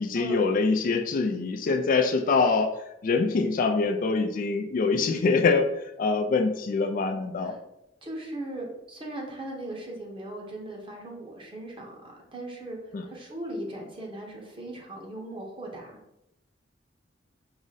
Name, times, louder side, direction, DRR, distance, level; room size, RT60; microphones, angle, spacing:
voice 1, 0.0-2.7 3.0-5.7 6.0-7.5 12.9-13.1, left 4 dB, 45° left, 6 dB, 0.3 m, -24 dB
voice 2, 8.0-12.8 13.0-15.9, right 1 dB, 30° right, -1 dB, 0.9 m, -38 dB
4.8 x 2.1 x 3.9 m, 0.86 s
head